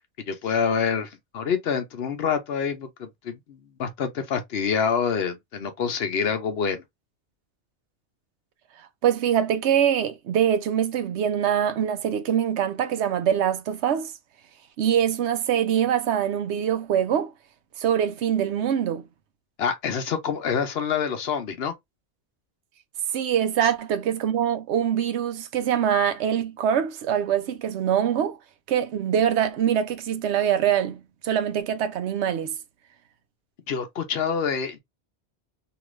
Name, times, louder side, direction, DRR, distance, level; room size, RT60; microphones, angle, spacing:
voice 1, 0.3-6.8 19.6-21.7 33.7-34.8, left 6 dB, 65° left, 0.9 m, -26 dB
voice 2, 9.0-14.1 14.8-17.3 17.8-19.0 23.1-28.4 28.7-32.6, right 9 dB, 80° right, 0.9 m, -24 dB
2.9 x 2.5 x 3.0 m
omnidirectional pair, 1.1 m